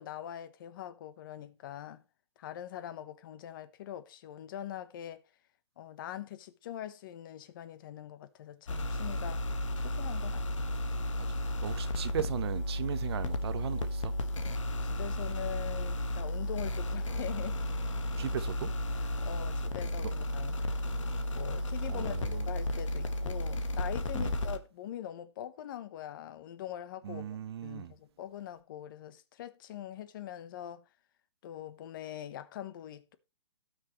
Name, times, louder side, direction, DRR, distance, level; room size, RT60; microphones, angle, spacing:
voice 1, 0.0-2.0 2.4-5.2 5.8-9.5 9.8-10.7 14.8-17.6 19.2-20.5 21.4-30.8 31.4-33.2, left 11 dB, 45° left, 1.1 m, -43 dB
sound 1, 8.7-24.6, left 1 dB, 85° left, 1.7 m, -33 dB
voice 2, 11.2-14.1 18.2-18.7 20.0-20.1 21.9-22.5 24.1-24.3 27.0-27.9, right 9 dB, 55° right, 0.8 m, -38 dB
18.0 x 6.4 x 3.1 m
hypercardioid pair, 155°, 16 cm